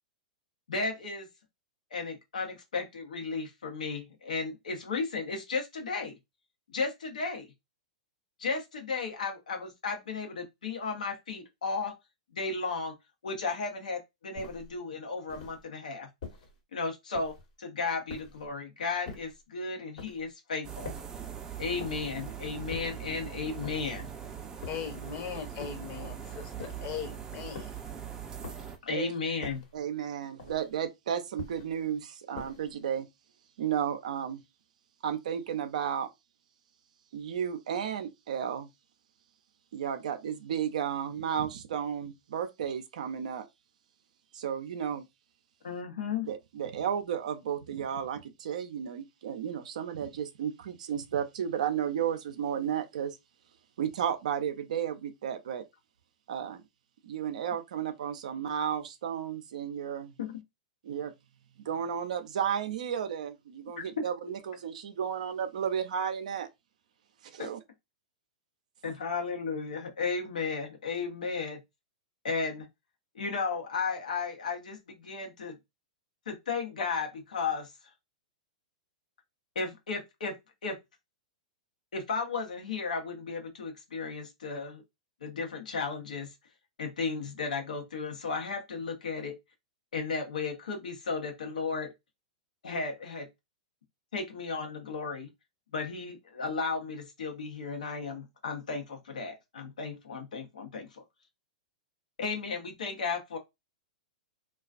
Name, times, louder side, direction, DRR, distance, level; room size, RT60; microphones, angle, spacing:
voice 1, 0.7-1.3 1.9-6.2 6.7-7.5 8.4-11.9 12.3-12.9 13.2-16.1 16.7-20.9 21.6-24.1 28.9-29.6 45.6-46.3 60.2-60.4 67.4-67.5 68.8-71.6 72.2-72.7 73.1-75.6 76.3-77.7 79.5-80.3 80.6-80.8 81.9-84.8 85.2-86.3 86.8-89.3 89.9-91.9 92.6-93.3 94.1-95.3 95.7-101.0 102.2-103.4, left 4 dB, 85° left, 0.8 m, -34 dB
sound 1, 14.3-14.7 15.3-15.7 16.2-16.6 17.1-17.5 18.1-18.5 19.0-19.4 20.0-20.3 20.8-21.2 21.8-22.2 22.7-23.1 23.6-24.0 24.6-25.0 25.6-26.0 26.6-27.0 27.5-27.9 28.4-28.8 29.4-29.8 30.4-30.8 31.4-31.8 32.4-32.8, left 4 dB, 70° left, 1.1 m, -45 dB
sound 2, 20.6-28.8, right 8 dB, 20° right, 0.5 m, -41 dB
voice 2, 24.7-27.7, left 8 dB, 45° left, 0.9 m, -39 dB
voice 3, 28.9-33.1 33.6-34.4 35.0-36.1 37.1-38.7 39.7-43.5 44.3-45.1 46.2-53.2 53.8-55.6 56.3-56.6 57.0-60.1 60.8-61.1 61.6-66.5 67.2-67.6, right 8 dB, 70° right, 0.5 m, -33 dB
2.4 x 2.3 x 2.4 m
hypercardioid pair, 115°, 4 cm